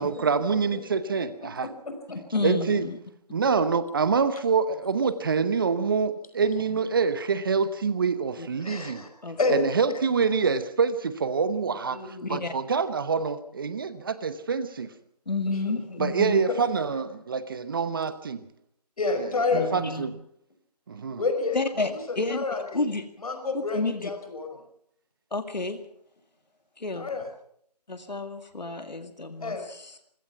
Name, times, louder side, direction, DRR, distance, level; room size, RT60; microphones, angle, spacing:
voice 1, 0.0-1.7 2.4-2.9 3.3-9.0 9.5-12.0 12.3-14.9 16.0-18.4 19.7-20.2 20.9-21.2, right 5 dB, 30° right, 14 dB, 1.0 m, -26 dB
voice 2, 1.6-2.2 8.6-9.1 9.4-9.6 11.9-12.3 15.6-16.0 19.0-19.7 21.2-22.8 23.2-24.5 27.0-27.3 29.4-29.6, left 3 dB, 60° left, 6 dB, 5.3 m, -29 dB
voice 3, 2.3-3.0 6.7-6.8 8.4-8.5 9.2-9.4 12.2-12.5 15.3-16.4 19.5-20.1 21.5-21.9 22.2-22.4 22.7-23.1 23.5-24.1 25.3-25.8 26.8-27.1 27.9-30.0, left 3 dB, 85° left, 8 dB, 2.2 m, -30 dB
26.0 x 17.0 x 5.9 m, 0.67 s
figure-of-eight pair, 160°, 21 cm